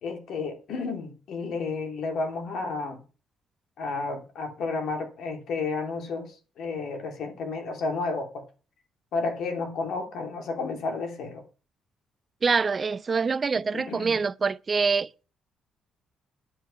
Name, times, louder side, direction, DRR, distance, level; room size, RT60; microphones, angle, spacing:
voice 1, 0.0-3.0 3.8-8.4 9.1-11.4 13.7-14.2, left 3 dB, 75° left, 3.0 m, -32 dB
voice 2, 12.4-15.2, right 5 dB, 35° right, 0.5 m, -25 dB
10.5 x 7.9 x 5.6 m
cardioid pair, 90°, 0 cm